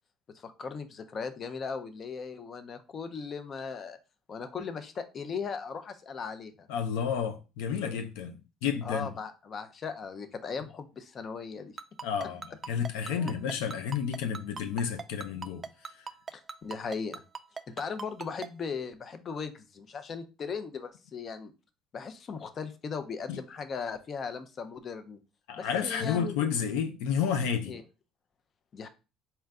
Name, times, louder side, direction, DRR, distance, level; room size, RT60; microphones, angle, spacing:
voice 1, 0.3-4.0 4.3-6.7 8.8-11.7 13.1-13.4 16.3-17.2 17.7-21.5 21.9-25.2 25.6-26.5 27.7-27.8 28.7-28.9, left 5 dB, 40° left, 0.5 m, -38 dB
voice 2, 6.7-9.1 12.0-15.9 23.3-23.4 25.5-27.7, left 7 dB, 90° left, 0.5 m, -31 dB
Ringtone, 11.8-18.5, right 5 dB, 25° right, 0.3 m, -38 dB
4.3 x 2.2 x 3.6 m
supercardioid pair, 100°, 0 cm